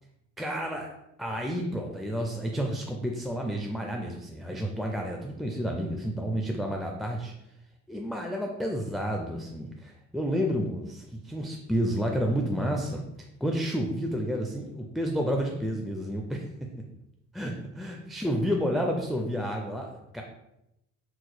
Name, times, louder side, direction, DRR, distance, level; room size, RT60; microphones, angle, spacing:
voice 1, 0.4-0.9 1.2-7.3 7.9-13.0 13.4-16.4 17.3-20.2, equal, ahead, 1 dB, 0.3 m, -30 dB
4.2 x 3.0 x 2.2 m, 0.86 s
cardioid pair, 90°, 30 cm